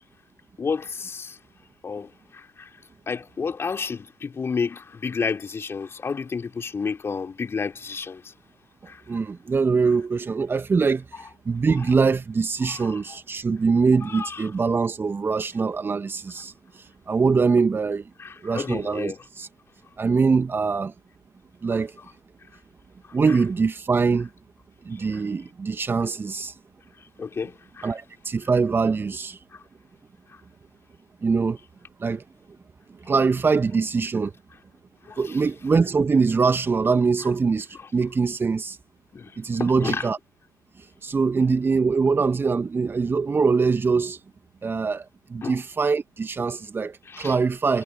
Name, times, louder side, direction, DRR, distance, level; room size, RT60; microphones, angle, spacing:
voice 1, 0.6-1.4 1.8-2.7 3.1-8.3 8.9-9.0 11.1-11.2 12.6-13.2 14.0-14.5 18.2-19.2 21.7-22.1 23.3-23.4 25.1-25.2 27.2-27.9 29.5-29.6 35.1-35.4 37.7-37.9 39.1-39.3 39.6-40.1 45.4-45.6 47.1-47.4, left 5 dB, 25° left, 4.1 m, -31 dB
voice 2, 9.1-11.1 11.5-18.1 18.4-19.5 20.0-20.9 21.6-21.9 23.1-24.3 24.9-26.5 27.8-29.4 31.2-31.6 32.0-32.2 33.1-34.3 35.2-38.8 39.4-40.2 41.0-44.2 44.6-47.8, right 4 dB, 20° right, 2.2 m, -23 dB
figure-of-eight pair, 65°, 10 cm